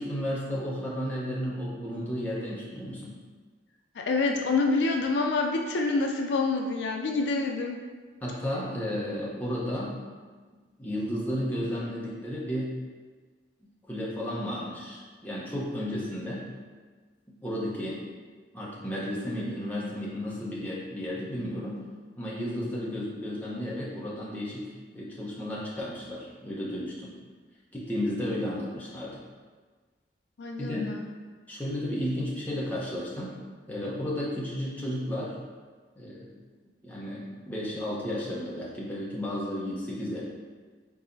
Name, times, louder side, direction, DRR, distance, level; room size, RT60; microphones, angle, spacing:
voice 1, 0.0-3.1 8.2-10.0 10.8-12.7 13.9-16.5 17.4-18.0 18.5-21.8 22.2-27.1 27.7-29.2 30.6-31.0 31.5-33.4 33.7-35.4 36.0-36.3 36.8-40.2, equal, 10° left, -6 dB, 0.8 m, -33 dB
voice 2, 4.0-7.8 30.4-31.1, left 3 dB, 70° left, 2 dB, 0.4 m, -27 dB
4.7 x 4.0 x 2.6 m, 1.4 s
head